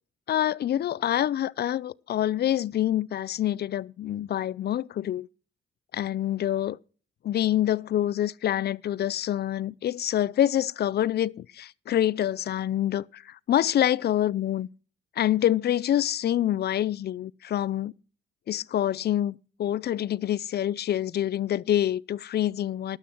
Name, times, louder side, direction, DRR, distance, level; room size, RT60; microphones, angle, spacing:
voice 1, 0.3-5.3 5.9-6.8 7.2-14.7 15.2-17.9 18.5-23.0, left 11 dB, 55° left, 0.5 m, -26 dB
12.0 x 11.5 x 4.5 m
cardioid pair, 90°, 20 cm